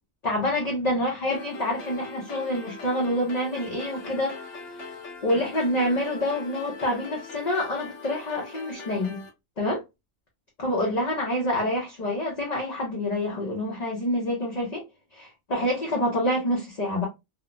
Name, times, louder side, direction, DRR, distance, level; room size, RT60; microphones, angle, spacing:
voice 1, 0.2-4.9 5.2-9.2 9.6-9.8 10.6-14.8 15.1-17.1, left 1 dB, 40° left, 0.7 m, -27 dB
sound 1, 1.3-9.3, left 3 dB, 60° left, 1.3 m, -41 dB
3.1 x 2.1 x 2.5 m
omnidirectional pair, 1.4 m